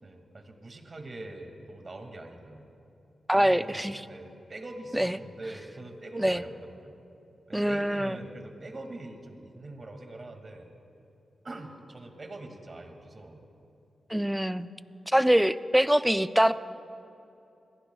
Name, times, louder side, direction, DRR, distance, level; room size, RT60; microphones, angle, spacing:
voice 1, 0.0-2.7 3.3-7.0 7.5-10.7 11.4-13.4, right 2 dB, 45° right, 4 dB, 2.3 m, -43 dB
voice 2, 3.3-4.0 4.9-5.2 6.2-6.4 7.5-8.2 14.1-14.7 15.1-16.5, equal, 5° right, 12 dB, 0.5 m, -24 dB
27.5 x 21.5 x 2.4 m, 2.8 s
cardioid pair, 70°, 0 cm